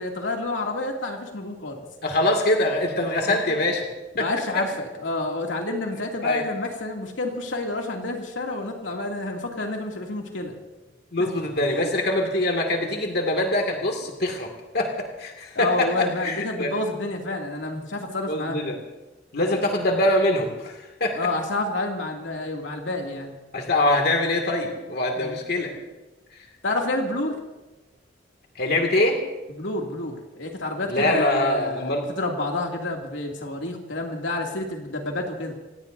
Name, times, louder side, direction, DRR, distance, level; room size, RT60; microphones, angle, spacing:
voice 1, 0.0-1.9 3.2-3.5 4.2-10.5 11.6-11.9 15.5-18.6 21.2-23.3 25.2-25.4 26.6-27.4 29.5-35.5, left 2 dB, 90° left, 0 dB, 2.6 m, -29 dB
voice 2, 2.0-3.8 4.2-4.3 4.5-4.6 6.2-6.4 11.1-16.7 18.3-18.8 19.3-21.2 23.5-25.7 28.6-29.2 30.9-32.1, left 1 dB, 60° left, 2 dB, 2.3 m, -24 dB
27.5 x 18.0 x 2.7 m, 1.1 s
head